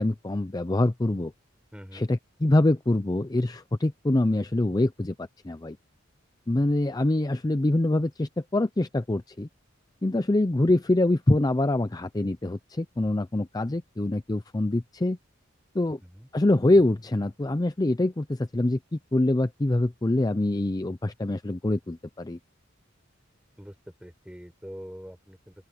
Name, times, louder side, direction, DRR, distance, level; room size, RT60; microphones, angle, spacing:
voice 1, 0.0-1.3 1.9-5.8 6.5-9.5 10.0-15.2 15.7-16.0 16.3-22.4, left 1 dB, 20° left, 0.5 m, -25 dB
voice 2, 1.7-2.1 6.8-6.9 16.1-16.3 23.6-23.7 24.0-25.5, equal, 5° right, 4.2 m, -44 dB
open air
head